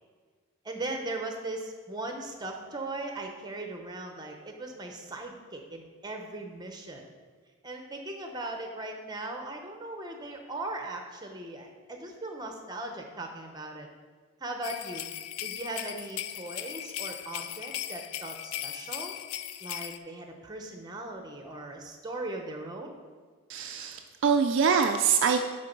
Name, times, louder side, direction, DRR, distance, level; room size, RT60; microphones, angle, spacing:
voice 1, 0.6-7.1 7.6-13.9 14.4-15.1 15.4-19.1 19.6-22.9, right 2 dB, 20° right, 3 dB, 0.8 m, -38 dB
sound 1, 14.6-20.0, left 12 dB, 80° left, 0.4 m, -38 dB
voice 2, 23.5-25.4, right 6 dB, 55° right, 5 dB, 0.3 m, -24 dB
10.0 x 3.8 x 5.2 m, 1.5 s
head